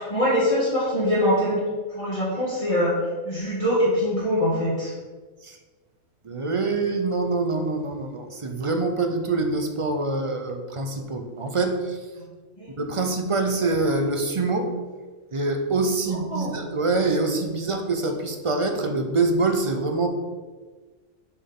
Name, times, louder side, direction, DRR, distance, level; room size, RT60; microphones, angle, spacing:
voice 1, 0.0-1.6 1.9-2.9 3.2-4.9 12.6-12.7 16.1-16.5, equal, 25° left, -9 dB, 1.8 m, -23 dB
voice 2, 6.2-12.0 12.8-14.7 15.3-20.1, right 3 dB, 30° right, 5 dB, 0.7 m, -25 dB
7.0 x 4.5 x 5.4 m, 1.4 s
omnidirectional pair, 1.3 m